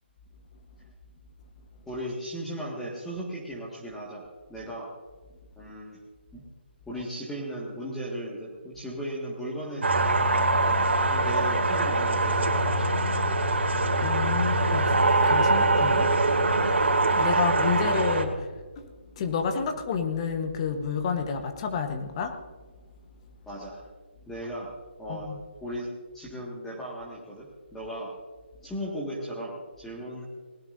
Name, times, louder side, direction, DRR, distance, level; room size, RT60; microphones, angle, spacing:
voice 1, 1.9-4.2 4.5-5.0 5.6-6.0 6.3-6.4 6.9-9.9 11.1-13.1 17.3-17.4 23.5-23.8 24.3-24.7 25.0-25.3 25.6-25.9 26.1-28.1 28.6-30.3, right 1 dB, 5° left, -5 dB, 1.8 m, -36 dB
sound 1, 9.8-18.2, right 2 dB, 85° right, 2.5 m, -23 dB
voice 2, 14.0-14.9 15.2-16.1 17.1-18.5 18.8-18.9 19.2-22.4 25.1-25.4, left 6 dB, 30° left, 7 dB, 1.1 m, -30 dB
20.0 x 17.0 x 2.6 m, 1.4 s
figure-of-eight pair, 155°, 6 cm